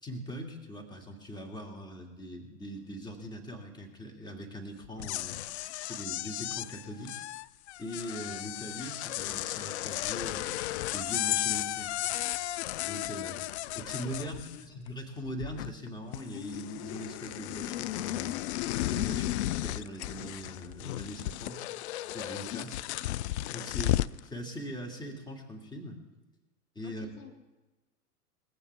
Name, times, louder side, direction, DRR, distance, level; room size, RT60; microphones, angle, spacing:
voice 1, 0.0-5.4 5.8-7.2 7.8-10.6 10.9-11.9 12.9-13.4 13.7-18.4 18.8-19.3 19.6-21.6 22.1-22.8 23.5-26.0 26.8-27.1, equal, 10° left, 1 dB, 2.5 m, -41 dB
sound 1, 4.8-14.9 15.2-15.9 16.1-24.2, left 15 dB, 45° left, 0.5 m, -34 dB
voice 2, 14.1-14.6 26.8-27.3, left 7 dB, 70° left, 2 dB, 2.8 m, -52 dB
21.5 x 15.0 x 3.6 m, 1.1 s
hypercardioid pair, 100°, 47 cm